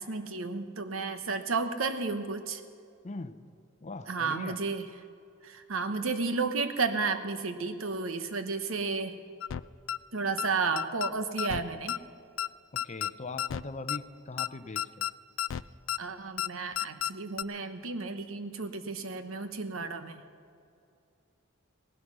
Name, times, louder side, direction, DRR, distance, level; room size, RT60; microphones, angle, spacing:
voice 1, 0.0-2.6 4.1-4.9 5.4-9.2 10.1-12.0 16.0-20.2, right 4 dB, 85° right, 9 dB, 1.0 m, -32 dB
voice 2, 3.0-3.4 3.8-4.6 12.7-15.1, left 3 dB, 35° left, 11 dB, 0.7 m, -40 dB
sound 1, 9.4-9.6 9.9-10.0 10.4-10.5 10.8-11.1 11.4-11.6 11.9-12.0 12.4-12.5 12.8-13.1 13.4-13.6 13.9-14.0 14.4-14.5 14.8-15.1 15.4-15.6 15.9-16.0 16.4-16.5 16.8-17.1 17.4-17.5, left 10 dB, 70° left, 0.3 m, -31 dB
17.5 x 12.0 x 6.2 m, 2.4 s
head